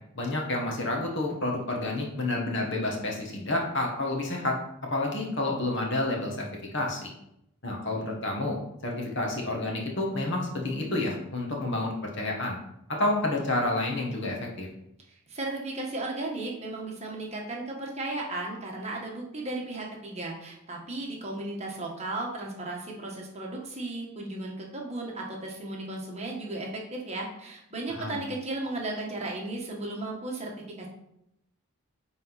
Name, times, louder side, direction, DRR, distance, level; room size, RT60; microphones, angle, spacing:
voice 1, 0.1-4.6 4.9-6.4 6.7-7.1 7.6-8.6 8.8-12.6 13.0-14.7 28.0-28.2, left 2 dB, 55° left, -1 dB, 1.6 m, -29 dB
voice 2, 15.1-30.5 30.8-30.9, right 2 dB, 30° right, -1 dB, 1.3 m, -35 dB
9.5 x 4.0 x 4.1 m, 0.80 s
head